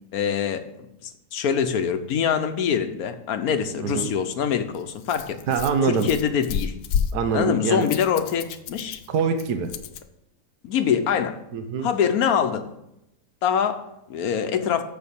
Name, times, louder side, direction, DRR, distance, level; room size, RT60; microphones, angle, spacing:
voice 1, 0.1-0.6 1.0-5.4 5.8-6.7 7.3-9.0 10.6-11.4 11.8-12.7 13.4-14.8, left 7 dB, 65° left, 8 dB, 1.2 m, -24 dB
voice 2, 3.8-4.1 5.5-6.1 7.1-7.9 9.1-9.7 11.5-11.9, right 5 dB, 70° right, 7 dB, 1.4 m, -24 dB
Rattle, 4.0-10.0, left 7 dB, 90° left, 1.3 m, -32 dB
7.1 x 6.5 x 6.9 m, 0.85 s
omnidirectional pair, 1.8 m